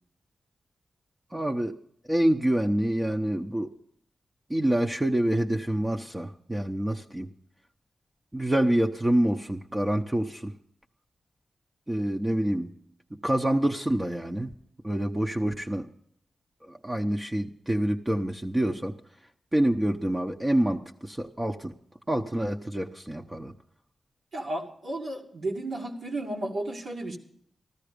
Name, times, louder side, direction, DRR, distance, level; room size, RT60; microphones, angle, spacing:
voice 1, 1.3-1.7 2.1-3.7 4.5-7.3 8.3-10.5 11.9-12.7 13.2-14.5 14.8-15.9 16.6-19.0 19.5-21.7 22.1-23.5, right 1 dB, 15° right, 2 dB, 0.8 m, -27 dB
voice 2, 24.3-27.2, right 1 dB, 75° right, -2 dB, 2.2 m, -33 dB
14.5 x 13.0 x 5.2 m, 0.67 s
cardioid pair, 60°, 0 cm